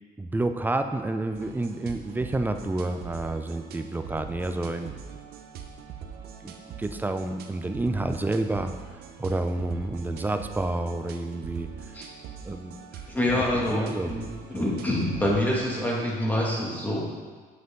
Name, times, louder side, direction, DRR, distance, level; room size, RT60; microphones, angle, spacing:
voice 1, 0.2-5.0 6.4-11.7 12.4-12.8 13.3-14.1 14.5-14.7, right 2 dB, 10° right, 7 dB, 0.5 m, -29 dB
sound 1, 1.3-16.2, right 7 dB, 70° right, 0.8 m, -43 dB
voice 2, 13.1-14.2 14.5-17.0, left 1 dB, 10° left, -4 dB, 2.3 m, -26 dB
8.2 x 7.8 x 3.9 m, 1.5 s
cardioid pair, 110°, 17 cm